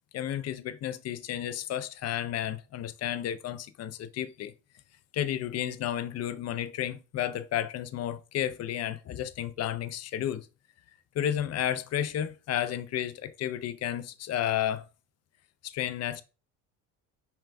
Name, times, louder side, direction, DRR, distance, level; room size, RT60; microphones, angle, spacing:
voice 1, 0.1-4.5 5.1-10.5 11.1-14.9 15.6-16.2, left 11 dB, 40° left, 0.4 m, -32 dB
4.3 x 3.4 x 2.5 m
supercardioid pair, 85°, 39 cm